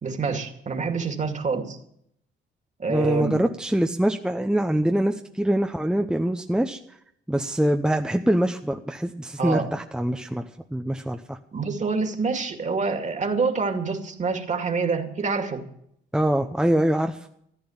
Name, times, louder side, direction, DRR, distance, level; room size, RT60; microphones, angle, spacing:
voice 1, 0.0-1.8 2.8-3.4 9.4-9.7 11.5-15.6, right 4 dB, 35° right, 5 dB, 2.3 m, -26 dB
voice 2, 2.9-7.0 7.3-10.4 10.7-11.4 16.1-17.2, right 1 dB, 5° right, 5 dB, 0.7 m, -24 dB
14.5 x 9.6 x 7.2 m, 0.71 s
cardioid pair, 90°, 20 cm